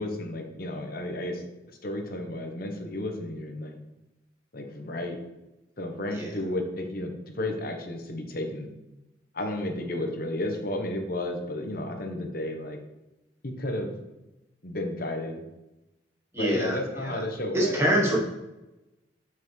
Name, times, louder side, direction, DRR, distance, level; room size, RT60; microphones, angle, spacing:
voice 1, 0.0-1.4 1.8-3.8 4.5-5.2 5.8-8.7 9.3-12.8 13.4-13.9 14.6-15.4 16.3-18.2, left 1 dB, 50° left, 3 dB, 0.9 m, -32 dB
voice 2, 16.3-17.2 17.5-18.2, right 1 dB, 15° right, -3 dB, 1.2 m, -25 dB
6.9 x 5.6 x 3.2 m, 0.97 s
head